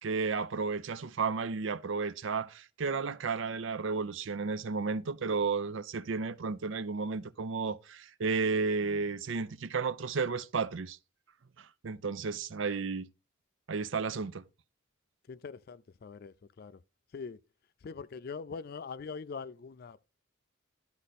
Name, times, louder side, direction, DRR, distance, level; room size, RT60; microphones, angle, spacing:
voice 1, 0.0-11.0 11.6-13.1 13.7-14.4, right 4 dB, 70° right, 0.5 m, -33 dB
voice 2, 15.3-16.8 17.1-17.4 17.8-20.1, left 5 dB, 50° left, 0.4 m, -43 dB
11.5 x 5.2 x 4.1 m
head